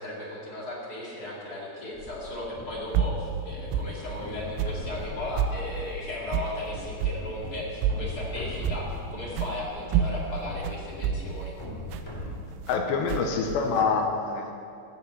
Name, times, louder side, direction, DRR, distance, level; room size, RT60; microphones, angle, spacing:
voice 1, 0.0-11.5, left 1 dB, 35° left, -4 dB, 1.7 m, -36 dB
sound 1, 1.9-12.4, left 2 dB, 10° left, 1.7 m, -41 dB
sound 2, 2.9-3.2 3.7-4.0 4.6-4.8 5.4-5.6 6.3-6.6 7.0-7.2 7.8-8.1 8.6-9.0 9.4-9.6 9.9-12.8 13.1-13.8, right 8 dB, 90° right, 3.0 m, -28 dB
voice 2, 12.7-14.5, left 5 dB, 80° left, 4 dB, 3.1 m, -26 dB
16.0 x 5.9 x 8.2 m, 2.5 s
omnidirectional pair, 5.0 m